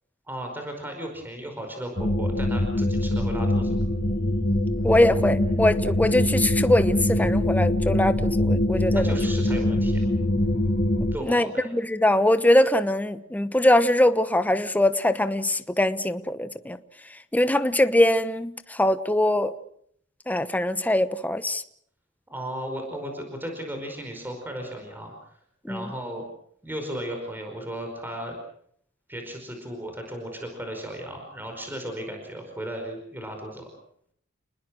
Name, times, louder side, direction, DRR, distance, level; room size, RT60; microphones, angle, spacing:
voice 1, 0.3-3.7 8.9-10.0 11.1-11.7 22.3-25.1 25.7-26.3 26.6-28.4 29.1-33.6, right 1 dB, 10° right, 3 dB, 5.0 m, -35 dB
sound 1, 2.0-11.2, left 1 dB, 40° left, 1.8 m, -23 dB
voice 2, 4.8-9.1 11.2-11.5 11.7-16.8 17.3-19.5 20.3-21.6 25.7-25.9, left 1 dB, 10° left, 11 dB, 1.0 m, -22 dB
29.5 x 20.5 x 6.3 m, 0.66 s
head